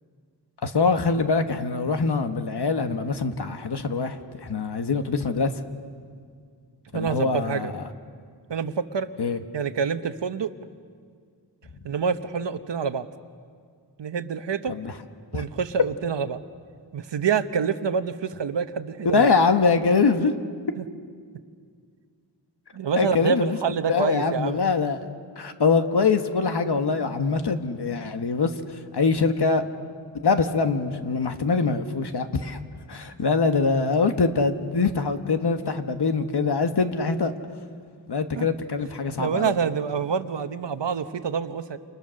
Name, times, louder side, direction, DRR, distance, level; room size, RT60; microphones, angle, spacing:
voice 1, 0.6-5.5 6.9-7.8 9.2-9.4 14.7-14.9 15.3-15.5 19.1-20.3 23.0-23.6 23.9-25.0 25.4-28.5 28.9-29.6 30.2-32.6 32.9-37.3 38.1-39.5, left 4 dB, 70° left, 7 dB, 1.6 m, -23 dB
voice 2, 6.9-7.7 8.5-9.1 9.5-10.5 11.8-13.1 14.0-14.7 15.3-16.4 16.9-19.3 20.8-20.9 22.7-24.6 27.0-27.2 38.4-38.5 39.2-41.8, right 6 dB, 80° right, 10 dB, 1.1 m, -27 dB
29.5 x 28.5 x 6.5 m, 2.1 s
wide cardioid pair, 100°, 42 cm